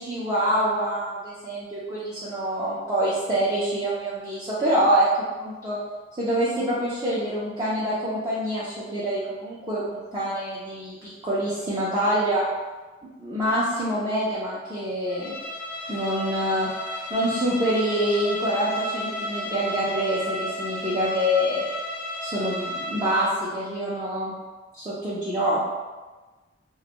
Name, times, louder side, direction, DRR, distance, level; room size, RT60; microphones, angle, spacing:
voice 1, 0.0-5.1 5.4-5.8 6.2-12.4 13.2-15.3 15.9-16.7 17.1-21.6 22.2-24.3 24.7-25.7, equal, 20° right, -9 dB, 0.4 m, -26 dB
Bowed string instrument, 15.1-23.4, left 1 dB, 50° left, 0.3 m, -33 dB
2.4 x 2.2 x 2.8 m, 1.2 s
head